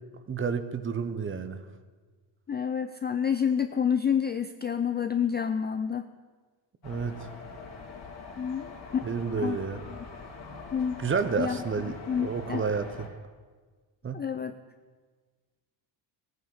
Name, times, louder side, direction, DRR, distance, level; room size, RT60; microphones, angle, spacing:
voice 1, 0.3-1.6 6.8-7.3 9.0-9.8 11.0-13.1 14.0-14.2, right 5 dB, 25° right, 11 dB, 0.9 m, -30 dB
voice 2, 2.5-6.1 8.4-9.0 9.4-9.6 10.7-11.0 11.4-11.6 11.9-12.6 14.1-14.5, left 7 dB, 25° left, 9 dB, 0.3 m, -28 dB
sound 1, 6.8-13.1, left 4 dB, 55° left, 3.3 m, -44 dB
16.5 x 9.3 x 6.6 m, 1.4 s
cardioid pair, 135°, 49 cm